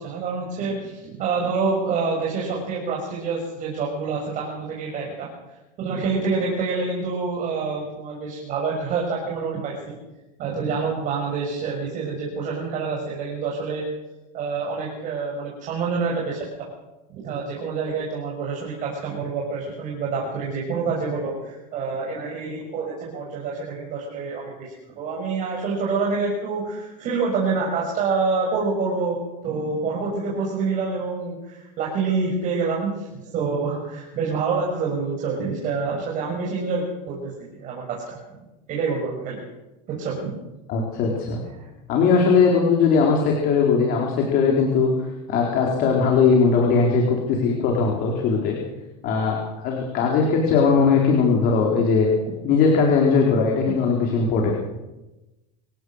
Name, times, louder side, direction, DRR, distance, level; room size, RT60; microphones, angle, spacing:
voice 1, 0.0-5.3 5.8-9.9 10.4-13.8 14.3-16.7 17.1-29.2 29.4-38.2 38.7-39.4 39.9-40.4 41.5-41.7, right 4 dB, 40° right, -2 dB, 6.5 m, -27 dB
voice 2, 40.7-41.4 41.9-44.9 45.3-48.6 49.0-52.1 52.4-54.5, left 5 dB, 45° left, 0 dB, 4.2 m, -19 dB
27.0 x 17.0 x 6.6 m, 1.0 s
supercardioid pair, 150°, 21 cm